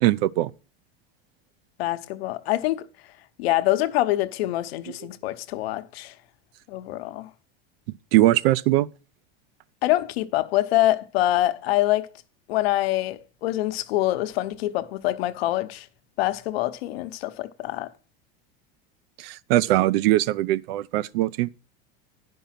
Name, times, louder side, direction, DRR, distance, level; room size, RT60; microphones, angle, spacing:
voice 1, 0.0-0.5 8.1-8.9 19.2-21.5, right 16 dB, 75° right, 0.6 m, -21 dB
voice 2, 1.8-2.9 3.4-6.1 6.7-7.3 9.8-12.1 12.5-15.9 16.2-17.9, left 15 dB, 80° left, 0.9 m, -25 dB
10.5 x 5.5 x 5.8 m
supercardioid pair, 140°, 30 cm